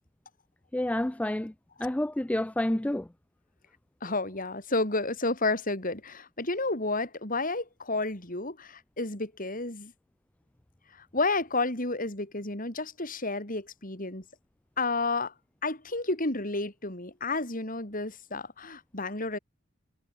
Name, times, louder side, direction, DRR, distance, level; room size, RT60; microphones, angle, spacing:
voice 1, 0.7-1.5 1.8-3.0, left 1 dB, 5° left, 0.3 m, -29 dB
voice 2, 4.0-9.9 11.1-14.2 14.8-15.3 15.6-19.4, left 2 dB, 40° left, 4.6 m, -31 dB
head